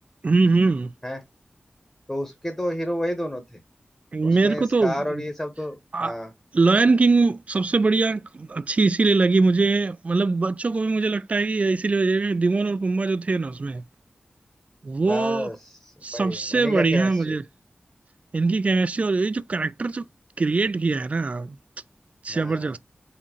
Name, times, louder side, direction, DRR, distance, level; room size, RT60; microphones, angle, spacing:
voice 1, 0.2-0.9 4.1-5.2 5.9-6.2 6.5-13.8 14.8-15.5 16.0-17.4 18.3-20.0 20.4-21.6 22.2-22.8, right 3 dB, 40° right, 0.3 m, -22 dB
voice 2, 2.1-3.6 4.2-6.3 15.0-17.4 22.3-22.8, equal, 15° left, 0.9 m, -30 dB
4.2 x 3.6 x 3.0 m
wide cardioid pair, 95°, 3 cm